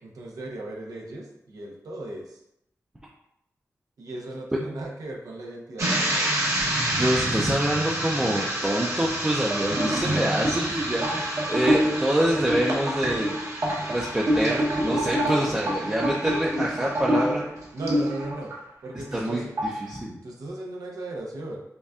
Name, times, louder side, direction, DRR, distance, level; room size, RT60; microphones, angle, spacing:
voice 1, 0.0-2.4 4.0-6.3 9.7-10.7 17.7-18.5 18.8-19.8 20.2-21.6, right 2 dB, 90° right, -1 dB, 0.7 m, -37 dB
sound 1, 5.8-18.6 18.9-19.3 19.6-19.9, right 1 dB, 55° right, 1.0 m, -26 dB
voice 2, 7.0-13.4 13.8-17.5 19.1-19.5 19.8-20.2, right 1 dB, 15° right, -3 dB, 0.5 m, -26 dB
5.1 x 2.3 x 2.4 m, 0.82 s
wide cardioid pair, 80°, 6 cm